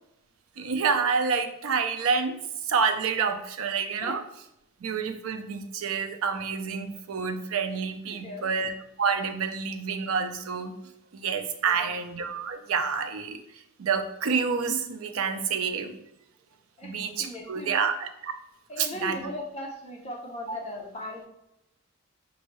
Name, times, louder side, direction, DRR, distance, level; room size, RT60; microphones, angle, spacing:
voice 1, 0.6-2.4 2.6-4.2 4.8-8.7 9.0-10.7 11.1-13.4 13.8-15.9 16.8-18.3 18.8-19.2 20.5-20.6, right 5 dB, 85° right, 7 dB, 0.5 m, -28 dB
voice 2, 8.1-8.4 11.5-11.9 16.8-16.9 17.2-17.9 18.7-21.3, left 1 dB, 30° left, 0 dB, 0.6 m, -38 dB
5.4 x 2.6 x 3.0 m, 0.82 s
head